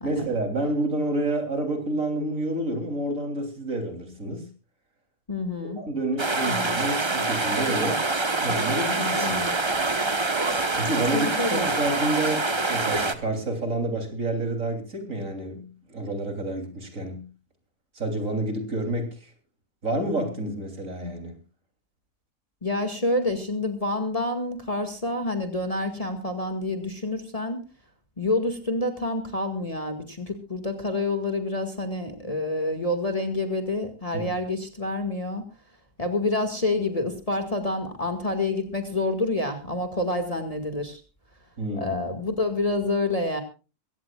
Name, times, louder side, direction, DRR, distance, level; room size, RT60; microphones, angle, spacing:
voice 1, 0.0-4.5 5.8-8.0 8.4-9.4 10.8-17.3 17.9-19.3 19.8-21.4 34.1-34.3 41.6-42.0, right 1 dB, 50° right, 5 dB, 3.6 m, -29 dB
voice 2, 5.3-5.8 6.5-6.8 9.2-9.5 11.1-11.7 22.6-27.6 28.2-35.5 36.0-41.0 41.8-43.4, left 2 dB, 20° left, 6 dB, 2.0 m, -28 dB
sound 1, 6.2-13.1, right 3 dB, 20° right, 0.9 m, -25 dB
23.0 x 17.0 x 2.4 m, 0.33 s
omnidirectional pair, 1.8 m